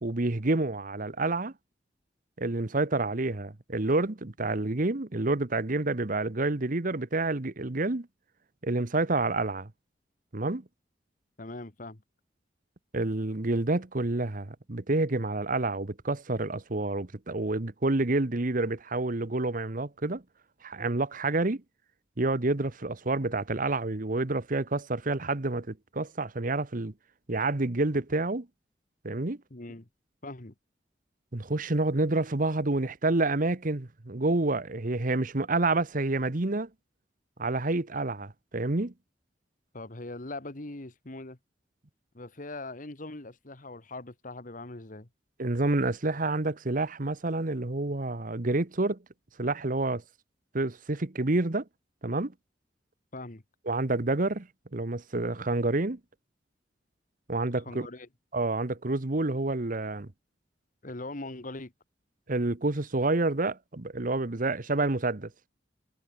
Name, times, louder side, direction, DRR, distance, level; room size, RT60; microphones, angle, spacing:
voice 1, 0.0-1.5 2.4-8.1 8.6-9.7 10.3-10.6 12.9-20.2 20.6-21.6 22.2-26.9 27.3-28.5 29.0-29.4 31.3-36.7 37.4-38.9 45.4-49.0 49.4-50.0 50.5-51.6 52.0-52.3 53.7-56.0 57.3-57.9 58.3-60.1 62.3-65.3, right 2 dB, 50° right, 1.2 m, -28 dB
voice 2, 11.4-12.0 29.5-29.9 30.2-30.5 39.7-41.4 42.1-45.1 53.1-53.4 57.5-58.1 60.8-61.7, left 2 dB, 50° left, 1.8 m, -41 dB
head